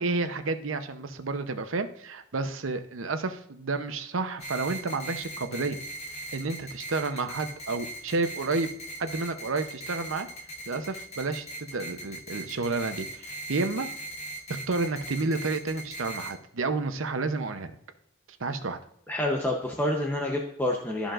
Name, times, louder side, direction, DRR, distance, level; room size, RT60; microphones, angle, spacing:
voice 1, 0.0-5.8 6.1-8.7 9.0-10.3 10.7-13.9 14.5-17.7 18.4-18.8, right 3 dB, 90° right, 9 dB, 0.8 m, -30 dB
sound 1, 4.4-16.3, right 1 dB, 35° left, 1.0 m, -40 dB
voice 2, 19.1-21.1, left 1 dB, 10° left, -1 dB, 0.7 m, -28 dB
13.0 x 5.0 x 2.5 m, 0.73 s
head